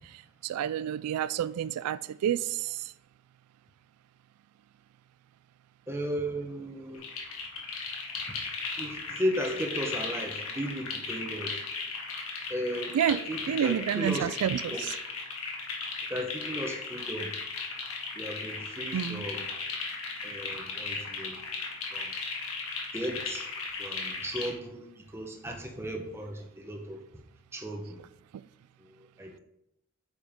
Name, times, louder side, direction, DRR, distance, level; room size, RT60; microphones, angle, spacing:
voice 1, 0.0-2.9 12.9-13.2 13.5-14.8 18.9-19.2, right 9 dB, 85° right, 0.3 m, -29 dB
voice 2, 5.9-7.0 8.3-8.4 8.8-11.6 12.5-14.3 14.7-14.8 16.1-17.4 18.1-19.5 20.2-21.4 21.9-22.1 22.9-23.5 23.8-27.0 27.5-28.0 28.8-29.4, equal, 10° right, 1.0 m, -35 dB
sound 1, 6.9-24.5, left 4 dB, 75° left, 1.7 m, -36 dB
9.1 x 7.0 x 3.6 m
head